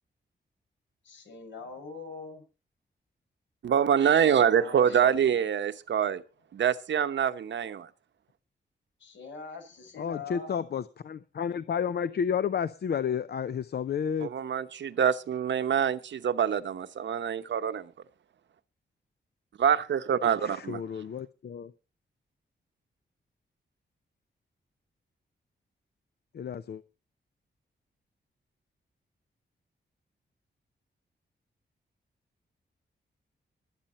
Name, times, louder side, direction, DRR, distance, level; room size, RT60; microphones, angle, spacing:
voice 1, 1.0-2.4 4.3-5.4 9.0-10.6, left 4 dB, 75° left, 6.0 m, -43 dB
voice 2, 3.6-6.2 6.5-7.9 14.2-17.9 19.6-20.8, right 8 dB, 75° right, 0.9 m, -25 dB
voice 3, 10.0-14.3 20.4-21.7 26.3-26.8, left 7 dB, 60° left, 0.6 m, -31 dB
21.0 x 8.9 x 4.2 m
wide cardioid pair, 140°, 19 cm